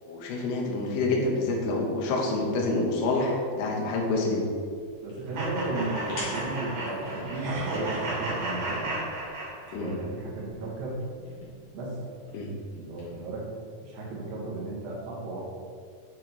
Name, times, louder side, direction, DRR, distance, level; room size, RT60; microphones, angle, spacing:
voice 1, 0.0-4.4 9.7-9.9 12.3-12.5, left 2 dB, 80° left, -1 dB, 2.4 m, -27 dB
sound 1, 4.7-13.2, left 2 dB, 55° left, 2.3 m, -48 dB
voice 2, 5.0-9.0 9.7-11.0 11.7-12.0 12.7-13.5 13.8-15.4, right 2 dB, 80° right, -5 dB, 1.5 m, -34 dB
sound 2, 5.3-10.0, right 2 dB, 60° right, 1.6 m, -33 dB
7.1 x 4.5 x 4.0 m, 2.1 s
omnidirectional pair, 5.4 m